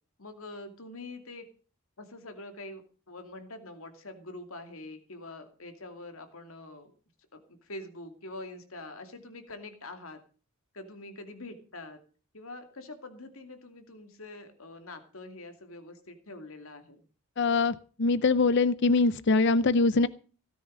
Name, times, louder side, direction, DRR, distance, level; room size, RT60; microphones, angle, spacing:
voice 1, 0.2-1.5 2.0-6.9 7.3-10.2 10.7-12.0 12.3-17.0, left 2 dB, 75° left, 7 dB, 2.5 m, -45 dB
voice 2, 17.4-20.1, left 3 dB, 55° left, 16 dB, 0.6 m, -23 dB
17.0 x 9.9 x 5.1 m, 0.39 s
head